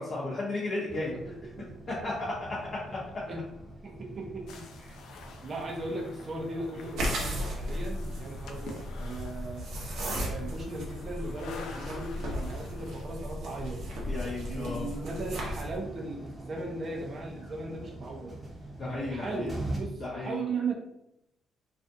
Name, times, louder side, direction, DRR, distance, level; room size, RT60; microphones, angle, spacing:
voice 1, 0.0-1.1 2.0-2.3 2.9-3.0 14.1-14.9 18.8-19.5 20.0-20.3, left 2 dB, 45° left, -6 dB, 0.6 m, -34 dB
voice 2, 0.8-1.8 3.3-3.4 3.8-9.7 10.1-13.8 14.5-18.4 18.9-20.7, right 2 dB, 45° right, 0 dB, 0.5 m, -38 dB
sound 1, 0.9-19.8, right 2 dB, 10° right, 0.8 m, -44 dB
sound 2, 4.5-13.0, left 4 dB, 85° left, 0.4 m, -48 dB
sound 3, 6.9-15.8, equal, 80° right, 0.7 m, -36 dB
2.4 x 2.4 x 2.6 m, 0.79 s
cardioid pair, 90°, 0 cm